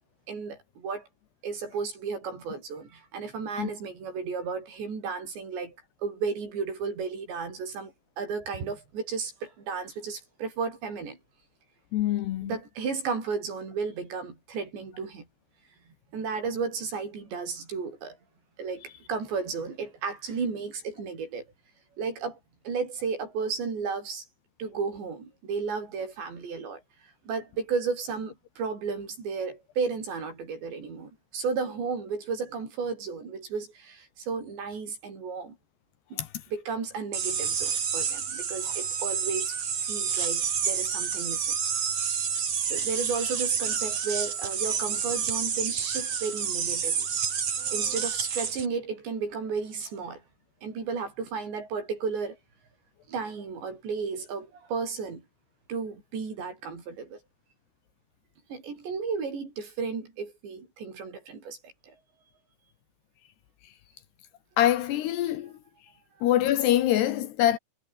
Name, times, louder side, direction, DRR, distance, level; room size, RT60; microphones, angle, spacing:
voice 1, 0.3-1.1 1.4-5.8 6.0-11.2 12.4-15.3 16.1-18.2 18.6-21.5 22.0-22.4 22.7-24.3 24.6-26.8 27.3-35.6 36.1-41.6 42.6-47.1 47.7-50.2 50.6-52.4 53.1-55.2 55.7-57.2 58.5-62.0, right 5 dB, 65° right, 8.8 m, -33 dB
voice 2, 11.9-12.5 36.2-36.3 64.6-65.5 66.2-67.6, left 12 dB, 70° left, 3.0 m, -24 dB
sound 1, 37.1-48.7, right 7 dB, 40° right, 3.3 m, -29 dB
omnidirectional pair, 5.4 m